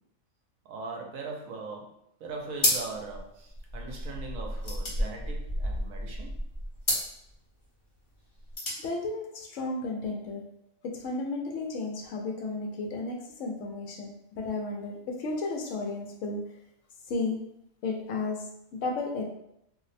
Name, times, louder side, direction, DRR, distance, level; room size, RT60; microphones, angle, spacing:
voice 1, 0.6-1.9 2.2-6.3, right 3 dB, 80° right, 1 dB, 1.1 m, -40 dB
sound 1, 2.5-3.1 3.4-3.5 3.8-6.0 6.8-7.1 8.3-8.8, left 1 dB, 50° left, 1.1 m, -30 dB
sound 2, 2.8-7.3 7.6-7.7 8.1-8.5, equal, 25° left, 0.9 m, -35 dB
voice 2, 8.8-10.4 11.0-13.1 13.4-14.9 15.2-16.4 17.1-17.4 17.8-18.4 18.8-19.3, left 3 dB, 70° left, 1 dB, 0.9 m, -33 dB
2.7 x 2.0 x 4.0 m, 0.78 s
omnidirectional pair, 1.5 m